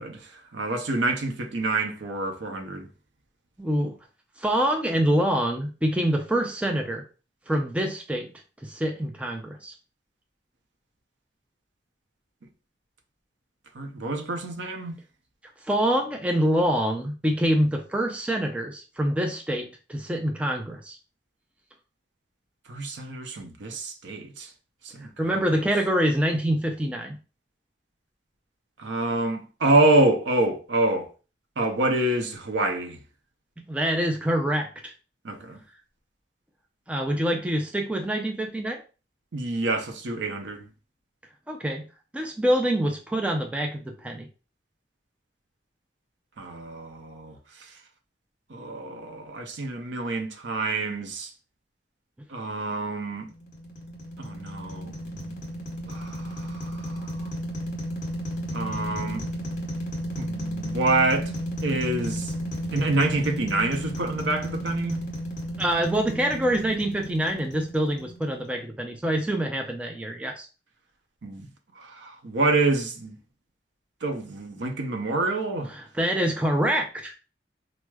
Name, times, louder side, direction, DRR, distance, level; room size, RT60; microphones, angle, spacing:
voice 1, 0.0-2.9 13.7-15.0 22.7-24.5 24.8-25.5 28.8-31.1 31.6-33.0 35.2-35.6 39.3-40.7 46.4-47.7 48.5-51.3 52.3-53.3 54.2-55.4 55.9-57.3 58.5-59.2 60.2-61.3 61.6-62.3 62.7-65.0 71.2-71.5 71.8-73.2 74.0-75.7, right 2 dB, 80° right, 0.6 m, -27 dB
voice 2, 3.6-3.9 4.4-7.0 7.5-8.3 8.6-9.7 15.7-21.0 25.2-27.2 33.7-34.9 36.9-38.8 41.5-41.8 42.1-44.3 65.6-70.5 75.7-77.1, right 1 dB, 5° right, 0.3 m, -25 dB
sound 1, 53.3-68.5, equal, 45° left, 1.0 m, -33 dB
4.6 x 2.0 x 2.2 m
head